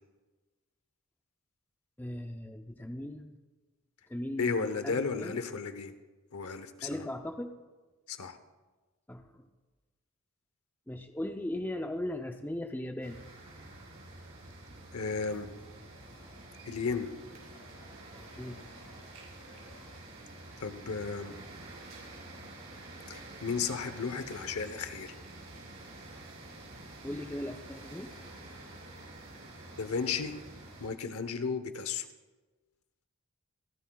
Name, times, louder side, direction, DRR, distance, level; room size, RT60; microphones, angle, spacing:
voice 1, 2.0-3.3 4.1-5.4 6.8-7.5 9.1-9.4 10.9-13.2 18.2-18.6 27.0-28.1, left 1 dB, 10° left, 5 dB, 0.5 m, -38 dB
voice 2, 4.4-5.9 6.3-7.1 8.1-8.4 14.9-15.5 16.6-17.1 20.6-21.3 23.1-25.2 29.8-30.3 30.8-32.1, left 5 dB, 80° left, 10 dB, 0.9 m, -34 dB
sound 1, 13.0-30.9, right 2 dB, 70° right, 5.2 m, -48 dB
sound 2, 14.9-20.0, left 2 dB, 55° left, 1.7 m, -60 dB
26.5 x 11.0 x 2.3 m, 1.3 s
head